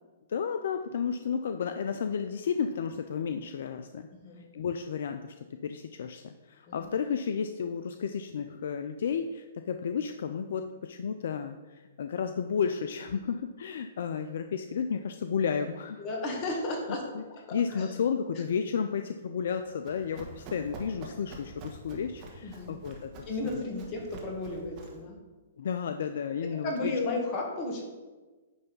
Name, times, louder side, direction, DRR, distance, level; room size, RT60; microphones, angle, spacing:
voice 1, 0.3-4.1 4.5-16.0 17.1-17.2 17.5-23.1 23.4-23.6 25.6-26.9, left 6 dB, 70° left, 8 dB, 0.4 m, -32 dB
voice 2, 4.1-4.4 6.7-6.9 16.0-17.0 17.7-17.9 22.4-22.7 23.2-25.2 26.6-27.8, left 2 dB, 35° left, 0 dB, 1.9 m, -33 dB
Run, 19.5-25.1, right 2 dB, 40° right, 1.5 m, -46 dB
9.4 x 3.4 x 5.5 m, 1.3 s
hypercardioid pair, 130°, 0 cm